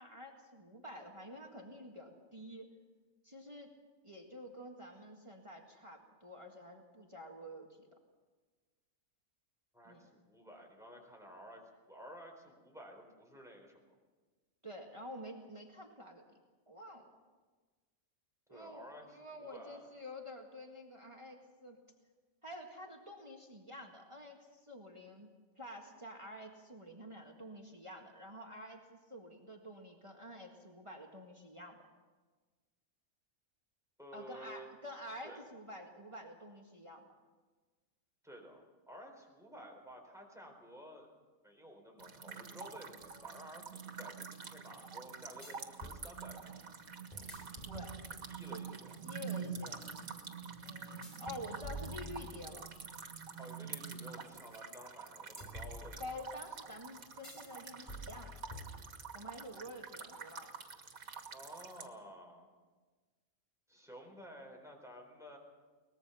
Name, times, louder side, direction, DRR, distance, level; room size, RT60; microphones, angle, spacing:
voice 1, 0.0-2.7 3.2-3.7 4.0-7.9 9.8-10.1 14.6-16.3 16.7-17.1 18.5-21.8 22.4-25.3 25.6-31.9 34.1-37.0 47.6-48.0 48.5-49.8 50.6-52.7 56.0-58.3 59.1-60.6, equal, 20° right, 1 dB, 1.9 m, -49 dB
voice 2, 9.7-13.8 18.5-19.9 34.0-34.7 35.2-35.4 38.2-41.1 41.4-46.6 48.3-49.0 53.4-56.0 61.3-62.5 63.7-65.4, equal, ahead, 1 dB, 4.1 m, -53 dB
sound 1, 42.0-61.9, right 5 dB, 85° right, 2.0 m, -47 dB
sound 2, 43.0-43.1 45.4-46.0 47.1-48.4 51.0-52.7 55.4-56.4 57.2-57.5 57.9-59.2, equal, 35° left, 3.5 m, -49 dB
23.0 x 20.0 x 5.7 m, 1.3 s
omnidirectional pair, 1.4 m